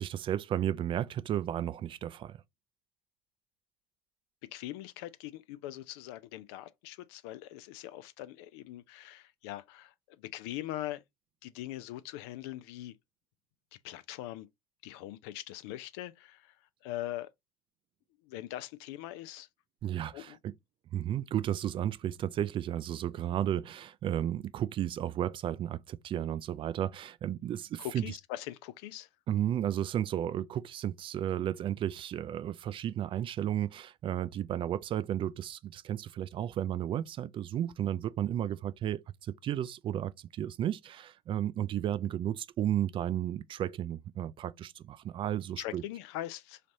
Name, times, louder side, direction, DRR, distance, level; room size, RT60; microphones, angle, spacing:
voice 1, 0.0-2.4 19.8-20.5 20.9-28.0 29.3-45.8, right 11 dB, 35° right, 0.3 m, -33 dB
voice 2, 4.5-11.0 11.4-12.9 13.8-14.5 14.8-16.6 16.8-17.3 18.2-19.5 20.1-20.4 27.8-29.1 45.6-46.6, left 14 dB, 70° left, 0.5 m, -41 dB
4.0 x 3.2 x 2.6 m
hypercardioid pair, 75°, 14 cm